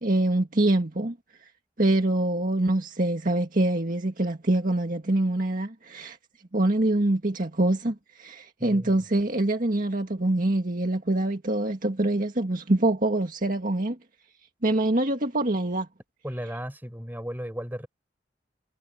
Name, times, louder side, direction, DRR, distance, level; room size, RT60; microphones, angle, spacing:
voice 1, 0.0-1.2 1.8-6.2 6.5-14.0 14.6-15.9, right 1 dB, 50° right, 1.9 m, -25 dB
voice 2, 8.6-8.9 16.2-17.9, equal, 10° right, 7.3 m, -35 dB
head